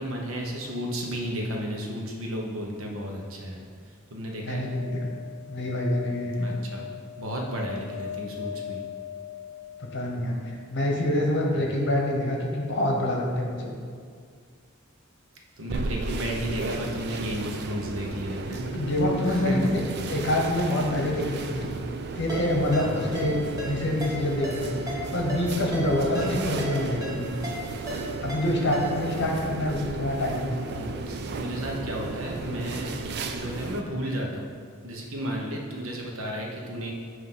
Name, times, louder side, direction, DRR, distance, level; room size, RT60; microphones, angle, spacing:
voice 1, 0.0-3.6 4.1-4.6 6.4-6.9 7.2-8.8 11.5-11.7 15.6-18.7 19.3-19.6 22.8-23.1 30.7-34.5 34.8-36.9, equal, 70° right, 0 dB, 1.0 m, -33 dB
sound 1, 4.4-10.6 12.9-13.0 13.2-13.3, left 9 dB, 80° left, 0.6 m, -39 dB
voice 2, 4.4-5.1 5.5-6.6 9.8-10.4 10.7-13.7 18.7-19.8 20.1-21.7 22.2-27.3 28.2-30.8, left 1 dB, 55° left, 0 dB, 1.0 m, -26 dB
sound 2, 15.7-33.8, right 3 dB, 50° right, 0.4 m, -34 dB
Ringtone, 22.3-29.2, equal, 15° right, 1.2 m, -37 dB
7.7 x 2.9 x 5.5 m, 2.1 s
head